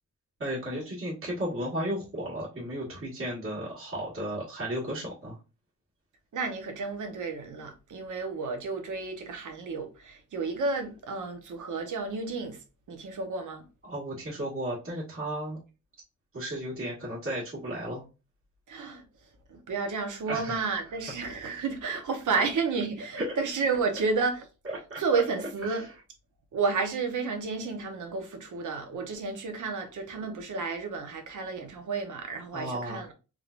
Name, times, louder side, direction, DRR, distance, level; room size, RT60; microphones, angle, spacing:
voice 1, 0.4-5.3 13.8-15.6 16.3-18.0 20.3-20.8 23.2-23.3 24.6-25.0 25.7-25.9 32.5-33.0, right 1 dB, 40° right, 1.6 m, -34 dB
voice 2, 6.3-12.6 12.9-13.6 18.7-19.0 19.5-24.5 25.0-25.9 26.5-33.1, right 4 dB, 70° right, 0.9 m, -31 dB
3.7 x 3.2 x 2.5 m
wide cardioid pair, 125°, 32 cm